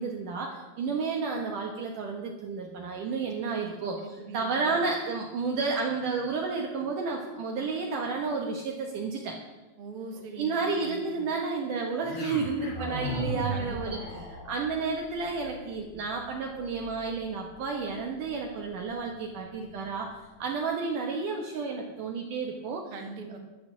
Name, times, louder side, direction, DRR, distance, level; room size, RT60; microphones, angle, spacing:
voice 1, 0.0-9.4 10.4-14.0 14.5-20.1 20.4-22.9, right 4 dB, 65° right, 1 dB, 2.5 m, -31 dB
voice 2, 3.5-4.8 9.8-11.3 13.5-14.2 22.9-23.4, right 3 dB, 40° right, 2 dB, 2.4 m, -42 dB
sound 1, 12.0-20.2, right 1 dB, 35° left, 4.0 m, -39 dB
11.5 x 10.5 x 7.2 m, 1.1 s
omnidirectional pair, 4.4 m